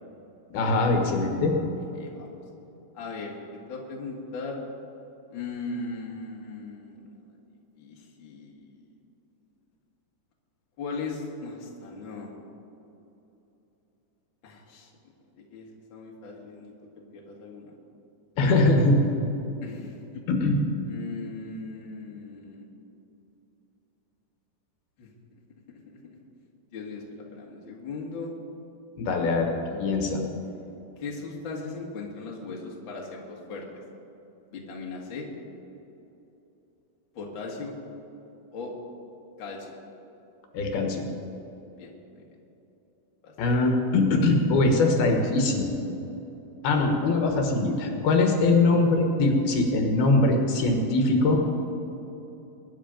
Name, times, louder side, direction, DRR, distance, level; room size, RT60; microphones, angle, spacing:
voice 1, 0.5-1.5 18.4-18.9 20.3-20.6 29.0-30.2 40.5-41.1 43.4-45.7 46.6-51.4, left 2 dB, 70° left, 2 dB, 3.2 m, -22 dB
voice 2, 1.9-2.3 2.9-3.4 3.7-4.6 5.3-7.0 7.8-8.8 10.8-12.3 14.4-14.9 15.4-16.7 17.1-17.7 18.4-18.6 19.6-20.2 20.9-22.7 25.0-25.1 25.7-26.2 26.7-27.0 27.3-28.3 31.0-33.8 34.5-35.3 37.1-37.8 38.5-38.7 39.4-39.8 41.8-41.9 42.2-42.3 43.2-43.3, left 4 dB, 40° left, -2 dB, 2.0 m, -38 dB
23.0 x 10.0 x 5.2 m, 3.0 s
omnidirectional pair, 4.8 m